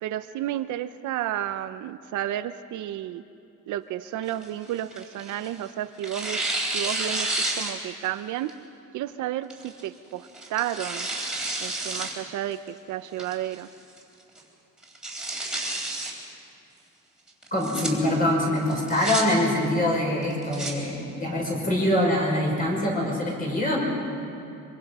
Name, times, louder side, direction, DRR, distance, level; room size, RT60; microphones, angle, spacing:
voice 1, 0.0-3.2 3.7-6.4 6.7-7.3 7.6-8.5 8.9-11.1 11.6-12.6 12.9-13.7, right 12 dB, 65° right, 10 dB, 0.7 m, -31 dB
Tearing, 4.2-5.6 6.0-8.1 8.5-8.6 9.5-9.8 10.3-12.1 12.5-12.6 13.2-13.6 14.0-14.1 14.4-14.5 14.8-16.1 17.4-17.9 18.7-19.2 20.2-20.7, right 2 dB, ahead, 3.7 m, -30 dB
voice 2, 17.5-23.8, left 1 dB, 25° left, -1 dB, 5.9 m, -24 dB
25.0 x 24.5 x 5.5 m, 2.7 s
cardioid pair, 165°, 33 cm